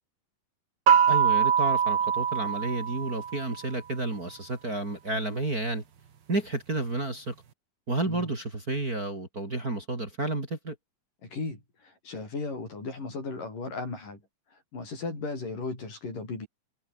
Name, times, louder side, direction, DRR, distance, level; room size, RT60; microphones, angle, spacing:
sound 1, 0.9-3.6, right 7 dB, 55° right, 1.2 m, -23 dB
voice 1, 1.1-5.8 6.3-7.3 7.9-10.8, right 2 dB, 25° right, 4.1 m, -31 dB
voice 2, 11.2-14.2 14.5-16.5, left 3 dB, 60° left, 9.7 m, -36 dB
omnidirectional pair, 4.3 m